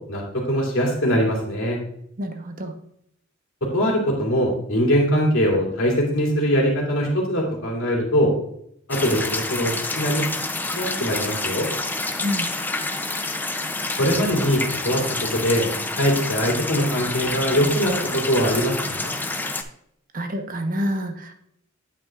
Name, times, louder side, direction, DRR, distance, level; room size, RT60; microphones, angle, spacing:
voice 1, 0.1-1.8 3.6-8.3 8.9-10.3 10.7-11.7 14.0-15.7 15.9-19.1, equal, 80° left, -2 dB, 2.7 m, -22 dB
voice 2, 2.2-2.7 12.2-12.5 20.1-21.3, equal, 45° right, 5 dB, 0.9 m, -27 dB
sound 1, 8.9-19.6, left 2 dB, 10° left, 0.5 m, -28 dB
9.0 x 8.2 x 2.4 m, 0.73 s
head